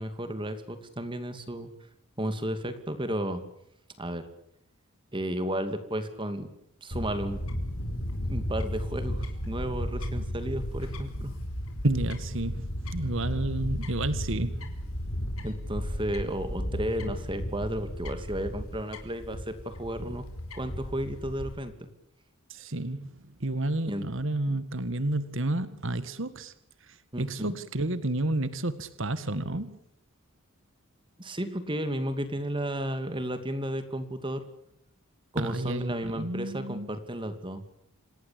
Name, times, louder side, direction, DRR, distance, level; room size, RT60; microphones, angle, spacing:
voice 1, 0.0-1.7 2.2-3.4 4.0-4.2 5.1-6.5 6.8-7.4 8.2-11.3 15.4-20.3 20.5-21.7 23.8-24.0 24.5-24.6 27.1-27.6 31.2-34.4 35.3-37.6, right 1 dB, 25° right, 10 dB, 2.6 m, -33 dB
Fowl / Bird, 6.9-21.5, equal, 80° left, 4.7 m, -34 dB
voice 2, 11.8-14.5 20.1-20.2 22.5-23.1 23.4-26.5 26.8-29.8 35.4-37.0, right 2 dB, 60° right, 13 dB, 1.8 m, -31 dB
27.5 x 18.5 x 8.8 m, 0.72 s
head